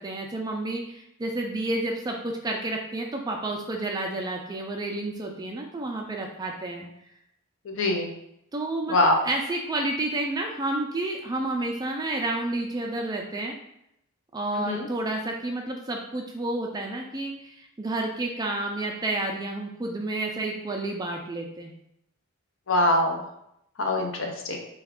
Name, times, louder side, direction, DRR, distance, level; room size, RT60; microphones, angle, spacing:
voice 1, 0.0-6.9 8.5-9.0 9.2-13.5 14.3-21.7, right 2 dB, 20° right, 2 dB, 0.3 m, -30 dB
voice 2, 7.7-8.1 8.9-9.2 14.6-14.9 22.7-23.2 23.8-24.6, left 1 dB, 60° left, 2 dB, 0.6 m, -23 dB
3.3 x 2.3 x 3.5 m, 0.78 s
head